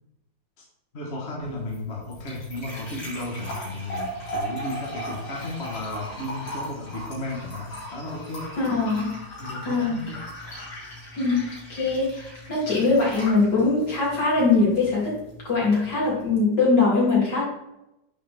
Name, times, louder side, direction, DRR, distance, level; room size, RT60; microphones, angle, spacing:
voice 1, 0.9-8.5 9.4-10.2, left 2 dB, 35° left, -3 dB, 1.7 m, -34 dB
sound 1, 1.4-16.4, equal, 80° left, 3.6 m, -38 dB
voice 2, 8.6-9.1 9.7-10.0 10.5-10.6 11.2-15.2 15.5-17.4, left 3 dB, 65° left, -5 dB, 3.7 m, -22 dB
9.2 x 6.4 x 3.5 m, 0.88 s
omnidirectional pair, 2.0 m